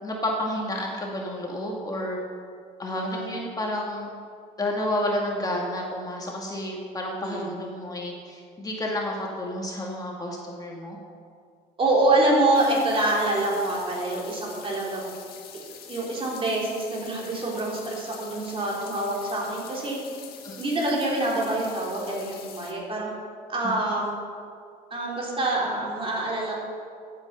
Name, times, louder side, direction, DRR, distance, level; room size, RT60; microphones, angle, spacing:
voice 1, 0.0-2.2 2.8-4.1 4.6-11.0 20.4-20.6, left 1 dB, 20° left, -1 dB, 1.8 m, -30 dB
voice 2, 2.9-3.4 7.2-7.5 11.8-15.1 15.9-20.0 20.6-23.1 23.5-24.2 24.9-26.6, right 2 dB, 35° right, -4 dB, 3.6 m, -26 dB
sound 1, 12.5-22.7, left 8 dB, 65° left, 1.6 m, -45 dB
14.0 x 8.2 x 5.5 m, 2.2 s
cardioid pair, 110°, 17 cm